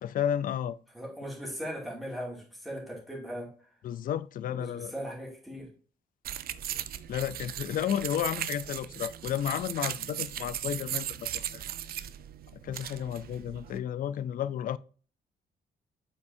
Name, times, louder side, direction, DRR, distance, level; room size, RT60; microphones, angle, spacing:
voice 1, 0.0-0.8 3.8-4.9 7.1-11.6 12.6-14.8, left 10 dB, 60° left, 0.4 m, -32 dB
voice 2, 0.9-3.5 4.5-5.7, equal, ahead, 2.5 m, -38 dB
sound 1, 6.2-13.8, right 11 dB, 65° right, 0.5 m, -37 dB
8.2 x 5.4 x 2.7 m
wide cardioid pair, 160°, 16 cm